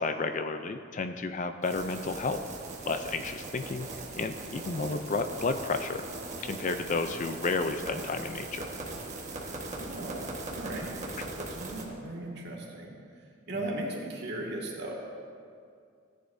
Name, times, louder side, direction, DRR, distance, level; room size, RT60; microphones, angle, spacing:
voice 1, 0.0-2.4 2.9-3.9 4.2-6.0 6.4-8.7 11.2-11.3, left 3 dB, 35° left, 8 dB, 0.4 m, -32 dB
sound 1, 1.6-11.9, right 2 dB, 35° right, 1.4 m, -40 dB
voice 2, 9.7-11.0 11.4-12.9 13.5-15.0, right 1 dB, 55° right, -3 dB, 2.0 m, -37 dB
17.0 x 10.0 x 2.7 m, 2.2 s
head